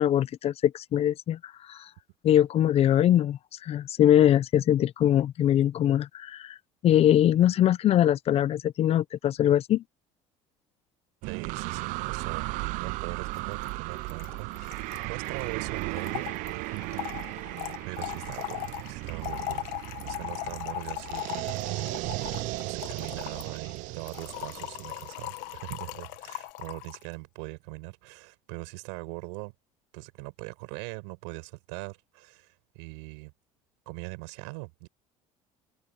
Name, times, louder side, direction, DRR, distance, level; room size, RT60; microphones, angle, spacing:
voice 1, 0.0-1.4 1.7-1.9 2.2-6.5 6.8-9.8, left 11 dB, 50° left, 0.6 m, -22 dB
sound 1, 11.2-25.8, right 22 dB, 70° right, 0.5 m, -36 dB
voice 2, 11.3-29.5 29.9-33.3 33.9-34.9, right 30 dB, 90° right, 5.7 m, -41 dB
Trickle dribble / Fill (with liquid), 13.3-13.4 13.7-13.8 13.9-27.0, left 18 dB, 75° left, 1.3 m, -39 dB
supercardioid pair, 100°, 13 cm